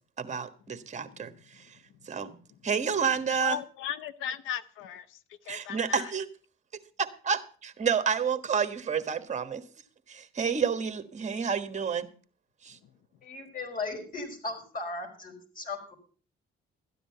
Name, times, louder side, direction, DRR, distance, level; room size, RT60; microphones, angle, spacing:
voice 1, 0.2-1.6 2.1-3.6 5.5-6.3 7.2-9.6 10.1-12.1 12.6-12.8, right 6 dB, 35° right, 1.4 m, -30 dB
voice 2, 3.4-5.2 5.4-6.1, left 9 dB, 90° left, 0.7 m, -37 dB
voice 3, 13.2-15.9, left 3 dB, 45° left, 4.9 m, -37 dB
13.0 x 10.0 x 5.6 m
cardioid pair, 90°, 20 cm